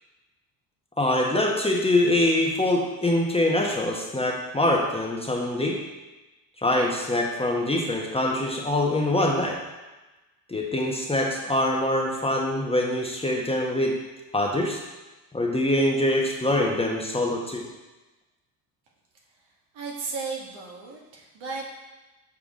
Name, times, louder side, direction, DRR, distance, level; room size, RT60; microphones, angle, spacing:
voice 1, 1.0-5.8 6.6-9.6 10.5-13.9 14.3-14.8 15.3-17.6, left 1 dB, 10° left, -1 dB, 1.2 m, -24 dB
voice 2, 19.7-21.6, right 4 dB, 60° right, -2 dB, 1.9 m, -34 dB
7.4 x 4.7 x 3.8 m, 1.1 s
supercardioid pair, 75°, 47 cm